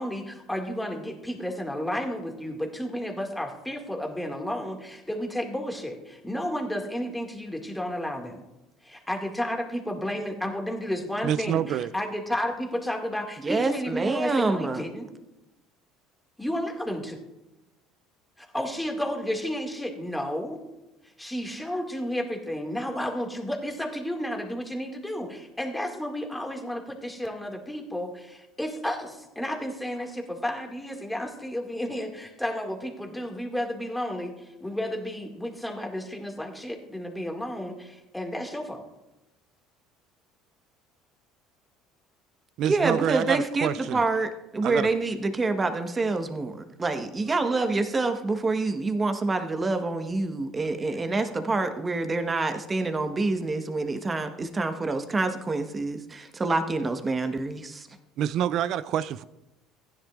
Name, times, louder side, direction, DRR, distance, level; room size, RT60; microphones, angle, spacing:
voice 1, 0.0-8.4 8.8-15.1 16.4-17.2 18.4-20.6 21.2-38.9, equal, 5° left, 2 dB, 2.1 m, -32 dB
voice 2, 11.2-11.9 42.6-44.0 44.6-44.9 58.2-59.2, right 10 dB, 60° right, 17 dB, 0.4 m, -27 dB
voice 3, 13.4-14.8 42.7-57.9, right 3 dB, 25° right, 8 dB, 1.2 m, -27 dB
15.5 x 10.0 x 2.5 m, 0.97 s
hypercardioid pair, 75°, 0 cm